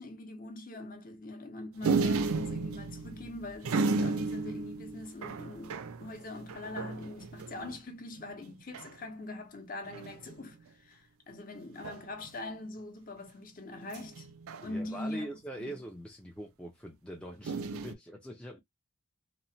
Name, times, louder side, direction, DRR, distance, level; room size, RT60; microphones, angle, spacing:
voice 1, 0.0-14.3 14.6-15.3 15.6-15.8, left 2 dB, 40° left, 0.7 m, -42 dB
sound 1, 1.8-7.8 8.2-8.3 8.5-9.0 9.9-10.4 11.8-12.3 13.9-15.2 17.4-17.9, right 4 dB, 85° right, 0.4 m, -33 dB
voice 2, 14.6-18.6, equal, 5° left, 0.4 m, -43 dB
2.9 x 2.1 x 2.6 m
head